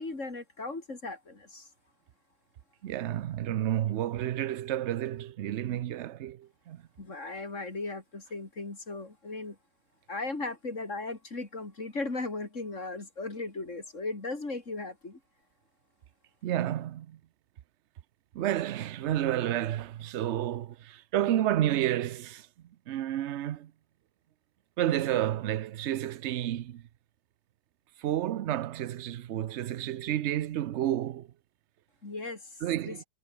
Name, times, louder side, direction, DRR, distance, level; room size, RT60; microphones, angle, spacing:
voice 1, 0.0-1.7 7.0-9.6 10.1-15.2 32.0-33.0, left 3 dB, 45° left, 4.3 m, -37 dB
voice 2, 2.8-6.8 16.4-17.2 18.3-22.5 22.9-23.7 24.8-26.8 28.0-31.3 32.6-33.0, right 12 dB, 60° right, 0.7 m, -30 dB
omnidirectional pair, 1.7 m